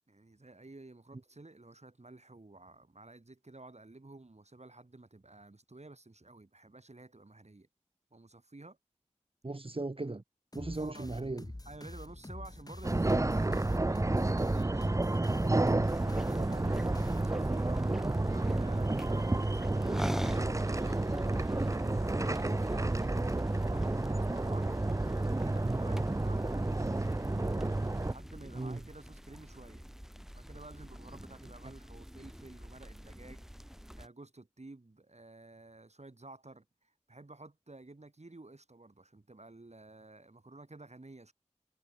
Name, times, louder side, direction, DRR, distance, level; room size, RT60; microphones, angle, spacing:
voice 1, 0.1-7.7 8.1-8.8 10.8-11.2 11.6-15.0 16.4-16.6 16.9-17.9 18.3-21.0 21.9-24.7 25.1-26.9 28.0-29.8 30.3-33.5 33.9-41.3, right 2 dB, 65° right, 4.7 m, -52 dB
voice 2, 9.4-10.2 10.5-11.5 13.0-13.1 15.4-16.8 17.2-17.3 28.5-28.8, right 2 dB, 50° right, 1.2 m, -39 dB
sound 1, 10.5-17.7, left 1 dB, 30° left, 2.0 m, -46 dB
sound 2, 12.8-28.1, right 2 dB, 25° right, 0.5 m, -30 dB
sound 3, 15.8-34.1, equal, 5° right, 0.9 m, -46 dB
wide cardioid pair, 45°, 12 cm